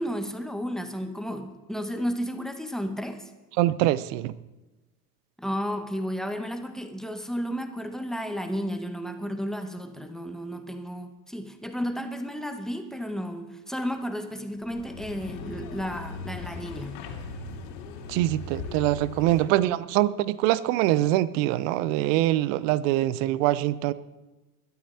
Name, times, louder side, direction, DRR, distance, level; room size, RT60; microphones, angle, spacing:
voice 1, 0.0-3.3 5.4-17.1, equal, ahead, 1.7 m, -33 dB
voice 2, 3.6-4.3 18.1-23.9, right 15 dB, 55° right, 0.9 m, -24 dB
sound 1, 14.6-19.6, left 3 dB, 65° left, 3.0 m, -39 dB
21.5 x 12.5 x 4.3 m
hypercardioid pair, 80°, 45 cm